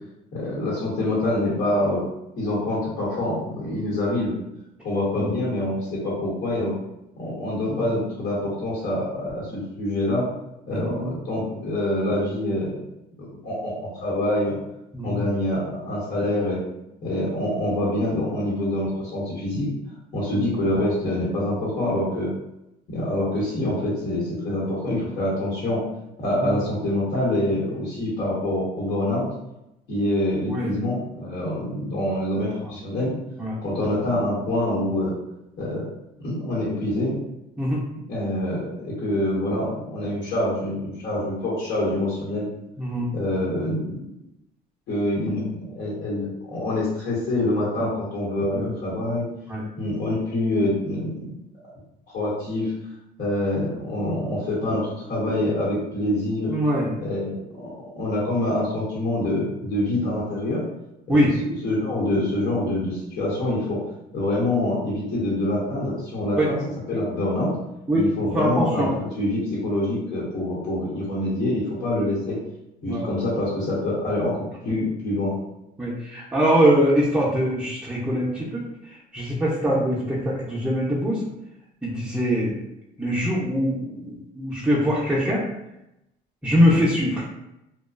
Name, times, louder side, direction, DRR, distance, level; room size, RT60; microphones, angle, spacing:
voice 1, 0.3-2.1 2.4-4.3 4.8-6.7 7.2-10.3 10.7-12.8 13.2-14.5 15.0-16.6 17.0-19.7 20.1-22.3 22.9-25.8 26.2-29.2 29.9-33.1 33.6-35.2 35.6-35.9 36.2-37.2 38.1-42.5 43.1-44.0 44.9-49.2 49.8-51.3 52.1-52.7 53.2-56.5 57.0-60.6 61.1-61.3 61.6-63.8 64.1-66.6 66.9-67.6 67.9-72.4 72.8-75.4, left 1 dB, 70° left, -7 dB, 1.1 m, -25 dB
voice 2, 10.7-11.1 14.9-15.2 20.4-20.5 26.4-26.5 30.5-30.7 33.4-33.5 37.6-37.8 42.8-43.1 48.5-48.7 49.5-49.6 56.5-56.9 61.1-61.3 66.4-66.5 67.9-68.1 68.3-68.9 71.9-72.0 72.9-73.1 75.8-78.6 79.1-81.2 81.8-82.5 83.0-85.4 86.4-87.3, equal, 10° right, -9 dB, 0.5 m, -22 dB
2.4 x 2.2 x 2.3 m, 0.87 s
cardioid pair, 110°, 17 cm